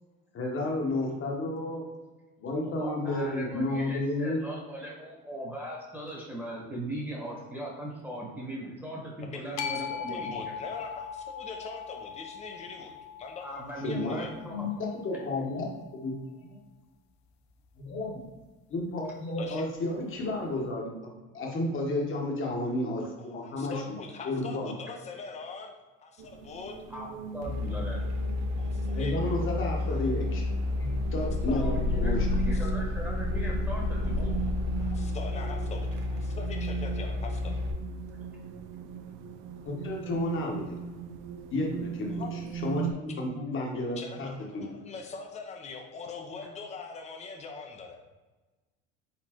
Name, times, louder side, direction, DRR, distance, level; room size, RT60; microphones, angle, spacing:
voice 1, 0.3-1.8 2.4-4.4 13.8-16.1 16.4-16.6 17.8-18.2 18.7-23.8 24.2-24.7 28.9-30.4 30.8-31.7 31.9-32.3 39.6-40.6 41.5-42.2 42.6-44.6, left 2 dB, 40° left, -1 dB, 1.2 m, -32 dB
voice 2, 2.6-10.5 13.4-14.7 26.9-27.1 27.3-28.0 31.6-34.3 40.0-40.2, right 1 dB, 5° right, -3 dB, 1.3 m, -39 dB
voice 3, 9.2-14.3 19.4-19.7 23.2-26.8 28.6-29.1 29.8-30.0 31.2-31.6 32.3-32.7 34.0-37.5 42.1-42.3 44.0-48.0, left 4 dB, 20° left, 2 dB, 0.7 m, -43 dB
sound 1, 9.6-15.8, left 7 dB, 60° left, 0.6 m, -40 dB
sound 2, 26.2-42.9, right 7 dB, 75° right, 0.5 m, -39 dB
sound 3, 27.4-37.7, left 2 dB, 55° right, 0.9 m, -30 dB
4.2 x 3.8 x 3.0 m, 1.2 s
cardioid pair, 105°, 31 cm